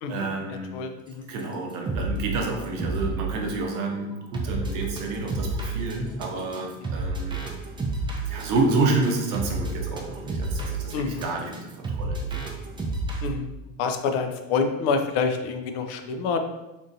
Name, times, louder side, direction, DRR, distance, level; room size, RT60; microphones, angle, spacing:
voice 1, 0.1-0.7 1.3-7.6 8.3-12.3, right 3 dB, 55° right, 0 dB, 0.8 m, -29 dB
voice 2, 0.7-1.3 6.9-7.0 10.9-11.2 13.2-13.5 13.8-16.4, left 5 dB, 55° left, 6 dB, 0.5 m, -27 dB
sound 1, 1.4-1.5 1.7-2.2 2.6-13.3, right 2 dB, 15° right, 0.4 m, -30 dB
2.9 x 2.6 x 2.6 m, 0.97 s
hypercardioid pair, 80°, 38 cm